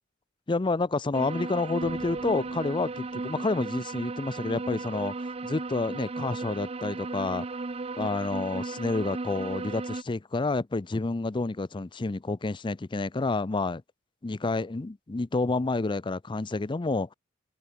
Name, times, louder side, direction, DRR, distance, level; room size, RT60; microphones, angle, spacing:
voice 1, 0.5-7.5 8.0-13.8 14.2-17.1, left 3 dB, 25° left, 0.5 m, -29 dB
sound 1, 1.1-10.0, right 3 dB, 30° right, 0.6 m, -35 dB
sound 2, 1.8-3.5, left 2 dB, 80° left, 1.6 m, -51 dB
head